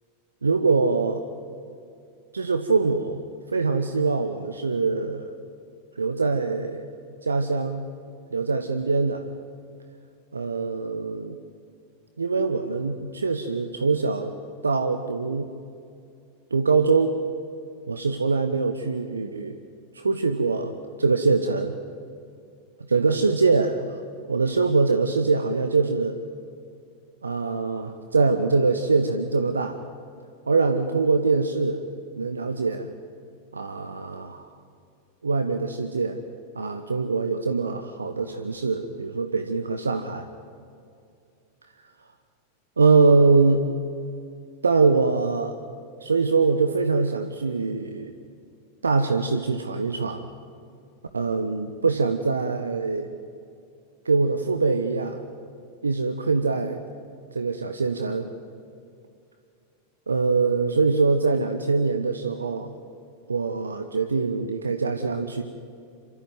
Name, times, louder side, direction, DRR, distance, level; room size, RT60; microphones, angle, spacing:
voice 1, 0.4-1.2 2.3-3.2 3.5-5.3 6.0-6.9 7.2-7.9 8.3-9.3 10.3-11.4 12.2-14.4 14.6-15.5 16.5-17.2 17.9-19.6 19.9-21.8 22.9-24.0 24.3-26.2 27.2-29.8 30.5-31.8 32.2-32.9 33.5-34.5 35.2-36.2 36.5-40.3 42.8-43.6 44.6-45.6 46.0-48.1 48.8-50.3 51.1-53.1 54.0-55.2 55.8-56.8 57.3-58.3 60.1-62.7 63.3-65.4, right 4 dB, 75° right, 8 dB, 1.0 m, -23 dB
27.0 x 13.5 x 9.4 m, 2.5 s
figure-of-eight pair, 90°, 0 cm